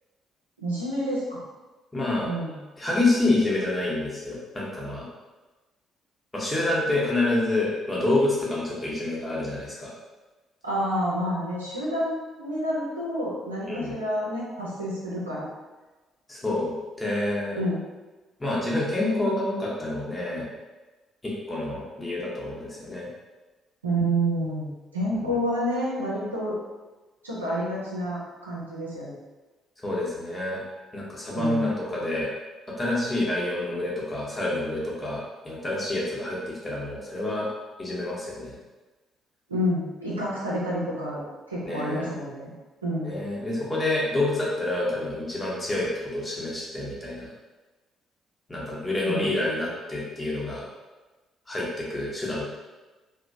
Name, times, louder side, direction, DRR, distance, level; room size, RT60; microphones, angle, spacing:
voice 1, 0.6-1.4 2.2-2.6 10.6-15.5 17.5-17.8 23.8-26.5 27.2-29.1 31.3-31.7 39.5-42.5 42.8-43.1 49.1-49.3, equal, 90° right, -7 dB, 0.5 m, -29 dB
voice 2, 1.9-2.3 2.8-5.1 6.3-9.9 13.7-13.9 16.3-17.6 18.4-20.5 21.2-23.1 25.1-25.3 29.8-30.6 30.9-32.3 32.7-37.5 37.8-38.6 41.7-42.1 43.0-47.3 48.5-50.7 51.5-52.4, left 2 dB, 20° left, -5 dB, 1.0 m, -28 dB
2.9 x 2.2 x 2.6 m, 1.2 s
figure-of-eight pair, 45°, 0 cm